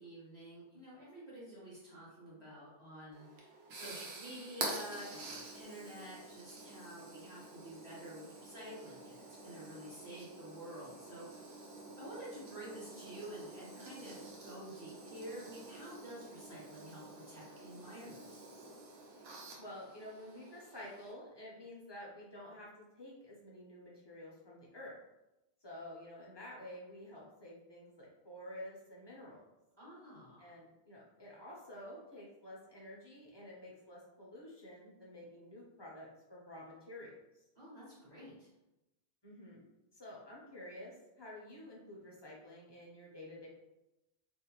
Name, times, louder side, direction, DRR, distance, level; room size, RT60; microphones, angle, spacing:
voice 1, 0.0-11.6 12.0-18.4 29.8-30.5 37.6-38.5, right 1 dB, 45° right, -7 dB, 0.9 m, -50 dB
sound 1, 3.1-21.1, right 2 dB, 80° right, 0.9 m, -48 dB
voice 2, 19.6-22.7 23.0-24.9 25.6-29.4 30.4-37.2 39.2-39.7 39.9-43.5, left 1 dB, 35° left, -5 dB, 0.5 m, -50 dB
2.5 x 2.1 x 2.8 m, 0.96 s
omnidirectional pair, 1.1 m